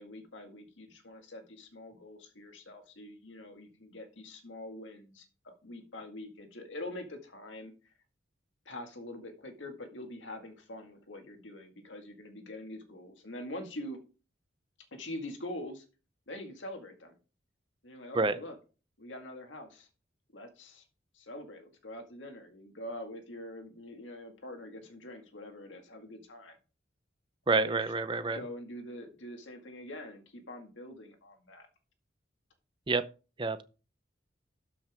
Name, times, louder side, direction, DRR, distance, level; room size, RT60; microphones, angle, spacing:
voice 1, 0.0-7.9 8.7-14.0 14.9-15.9 16.3-17.2 17.8-18.6 19.0-19.9 20.3-20.9 21.1-26.6 27.5-27.9 28.2-31.7, left 1 dB, 80° left, 2.0 m, -44 dB
voice 2, 27.5-28.4 32.9-33.0 33.4-33.6, right 3 dB, 25° right, 0.6 m, -28 dB
12.5 x 5.9 x 3.6 m
head